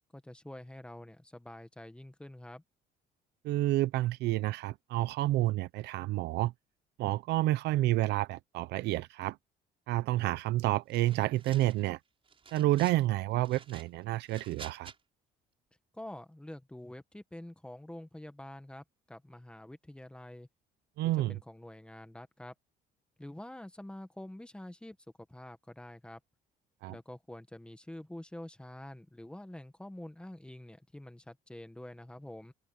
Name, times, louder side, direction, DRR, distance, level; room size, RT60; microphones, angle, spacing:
voice 1, 0.1-2.6 15.9-20.5 21.0-22.5 23.2-25.0 25.3-26.2 26.9-32.5, left 1 dB, 5° left, 1.8 m, -47 dB
voice 2, 3.4-6.5 7.0-9.4 9.9-12.0 12.5-14.9 21.0-21.4 26.8-26.9, right 16 dB, 80° right, 0.8 m, -29 dB
sound 1, 10.9-11.9 12.3-13.0 13.4-15.0, right 5 dB, 30° right, 6.3 m, -51 dB
open air
cardioid pair, 110°, 17 cm